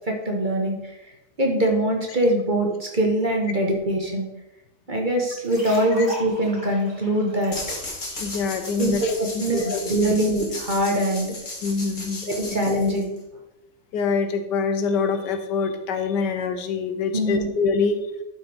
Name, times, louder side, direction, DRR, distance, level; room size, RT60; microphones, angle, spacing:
voice 1, 0.1-0.8 1.4-4.3 4.9-7.5 8.8-11.3 12.2-13.1 17.1-17.5, right 1 dB, 30° right, 0 dB, 1.3 m, -23 dB
sound 1, 5.3-9.1, left 1 dB, 30° left, 3.4 m, -40 dB
sound 2, 7.5-13.2, left 2 dB, 50° left, 2.3 m, -35 dB
voice 2, 8.2-10.2 11.6-12.6 13.9-18.1, left 5 dB, 85° left, 8 dB, 1.5 m, -25 dB
11.5 x 5.9 x 3.5 m, 0.92 s
omnidirectional pair, 1.8 m